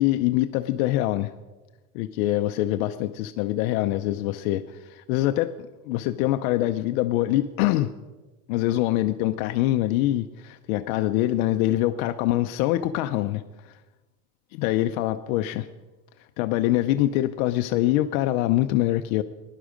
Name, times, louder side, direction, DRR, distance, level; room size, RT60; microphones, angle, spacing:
voice 1, 0.0-1.3 1.9-5.5 5.9-7.9 8.5-13.4 14.5-15.7 16.4-19.2, left 15 dB, 80° left, 9 dB, 0.7 m, -24 dB
16.0 x 11.0 x 5.1 m, 1.2 s
cardioid pair, 155°, 42 cm